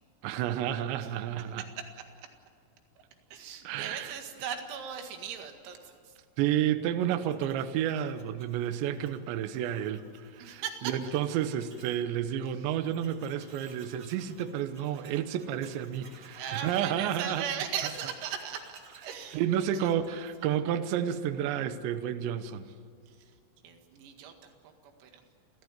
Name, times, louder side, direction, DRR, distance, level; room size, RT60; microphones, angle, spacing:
voice 1, 0.2-1.6 3.6-4.2 6.4-17.4 19.3-22.7, right 10 dB, 75° right, 9 dB, 2.9 m, -31 dB
voice 2, 1.6-1.9 2.2-2.3 3.3-6.2 10.4-10.9 16.4-19.4 19.7-20.6 23.1-23.4 23.6-25.2, right 8 dB, 90° right, 4 dB, 4.7 m, -39 dB
Tools, 6.9-12.0 12.4-12.5 12.7-20.3, right 4 dB, 40° right, 1.5 m, -57 dB
29.0 x 14.5 x 9.5 m, 2.3 s
omnidirectional pair, 5.9 m